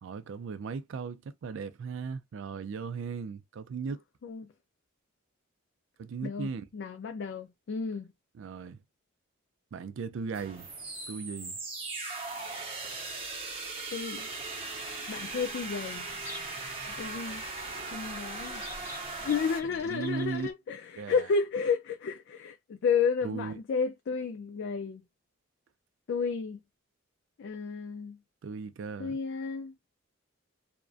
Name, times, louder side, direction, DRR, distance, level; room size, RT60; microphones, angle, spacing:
voice 1, 0.0-4.0 6.0-6.7 8.3-8.8 9.7-10.7 11.1-11.6 19.7-20.5 21.0-21.3 23.2-23.6 28.4-29.2, right 5 dB, 60° right, 0.3 m, -37 dB
voice 2, 6.2-8.1 13.9-14.3 15.1-16.1 17.0-17.4 17.9-18.6 19.2-25.0 26.1-26.6 27.4-28.2 29.0-29.7, left 5 dB, 55° left, 0.3 m, -32 dB
sound 1, 10.3-19.6, right 3 dB, 25° right, 0.7 m, -39 dB
Bird vocalization bird call bird song, 15.1-20.5, left 1 dB, 10° left, 0.6 m, -50 dB
2.4 x 2.1 x 2.4 m
head